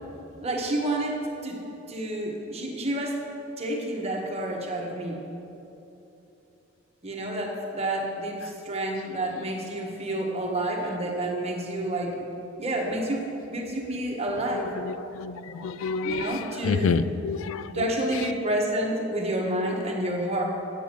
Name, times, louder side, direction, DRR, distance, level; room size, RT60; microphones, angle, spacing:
voice 1, 0.4-1.6 1.9-3.2 3.6-5.2 7.0-12.3 12.6-14.7 16.0-17.1 17.7-20.4, right 1 dB, 30° right, 1.3 m, -29 dB
voice 2, 14.8-17.9, left 4 dB, 85° left, 0.4 m, -29 dB
8.5 x 7.0 x 7.5 m
head